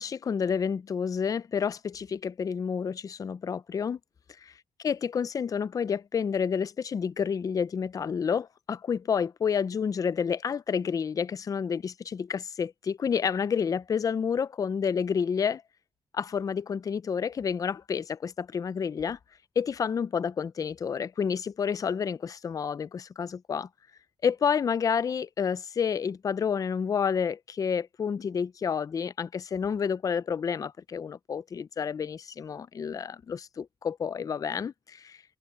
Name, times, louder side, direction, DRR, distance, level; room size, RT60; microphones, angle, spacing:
voice 1, 0.0-4.0 4.4-4.5 4.8-15.6 16.1-19.2 19.6-23.7 24.2-35.2, left 6 dB, 30° left, 0.4 m, -29 dB
wide cardioid pair, 150°, 12 cm